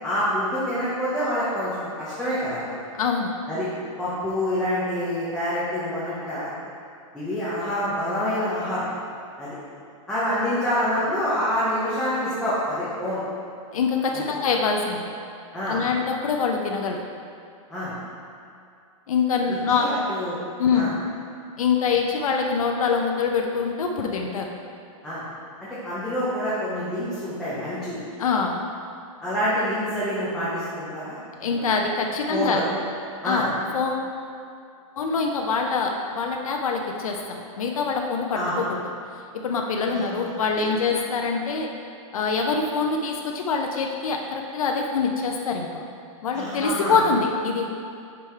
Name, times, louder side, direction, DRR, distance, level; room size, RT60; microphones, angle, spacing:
voice 1, 0.0-2.7 3.5-3.7 4.0-6.5 7.1-8.9 9.4-9.6 10.1-13.2 14.1-14.2 15.5-15.8 17.7-17.9 19.7-20.4 20.7-20.9 25.0-25.2 25.6-28.0 29.2-31.2 31.5-31.6 32.3-32.6 33.2-33.5 38.3-38.5 39.9-40.3 46.3-47.0, equal, 5° left, -12 dB, 0.7 m, -27 dB
voice 2, 3.0-3.3 13.7-15.1 15.7-17.1 19.1-19.9 20.6-21.0 21.6-24.5 28.2-28.6 31.4-32.6 33.2-34.1 35.0-38.8 39.4-41.7 42.1-45.9 46.2-47.8, left 5 dB, 75° left, 2 dB, 0.7 m, -24 dB
5.3 x 4.8 x 4.4 m, 2.5 s
hypercardioid pair, 175°, 18 cm